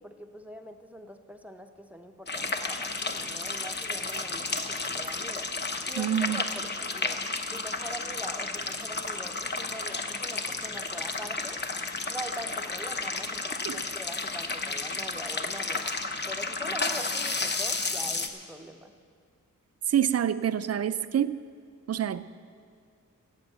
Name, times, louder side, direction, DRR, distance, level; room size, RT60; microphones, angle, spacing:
voice 1, 0.0-5.5 5.9-11.6 12.1-13.4 13.7-15.9 16.3-18.9, equal, 5° right, 6 dB, 0.6 m, -43 dB
sound 1, 2.3-18.3, left 3 dB, 30° left, 0.8 m, -32 dB
voice 2, 6.0-6.4 13.6-13.8 19.9-21.5 21.9-22.2, right 10 dB, 50° right, 14 dB, 0.4 m, -27 dB
14.0 x 8.2 x 8.1 m, 2.2 s
wide cardioid pair, 155°, 32 cm